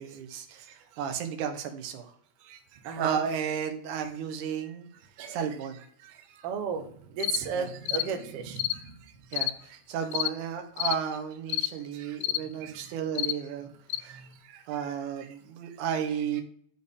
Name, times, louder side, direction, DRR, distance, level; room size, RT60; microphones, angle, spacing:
voice 1, 0.0-2.1 3.0-4.9 5.3-5.8 7.6-7.7 9.3-13.7 14.0-14.2 14.7-16.4, right 8 dB, 85° right, 5 dB, 2.5 m, -33 dB
voice 2, 2.8-3.2 5.2-5.5 6.0-8.9 11.9-12.2 12.6-12.9 14.0-15.0, right 6 dB, 65° right, 5 dB, 1.7 m, -36 dB
sound 1, 7.2-7.4 7.9-8.1 8.6-8.8 9.3-9.5 10.1-10.3 10.8-11.0 11.5-11.7 12.2-12.4 13.2-13.4 13.9-14.0, left 15 dB, 80° left, 1.7 m, -29 dB
12.0 x 4.3 x 3.5 m, 0.64 s
omnidirectional pair, 3.5 m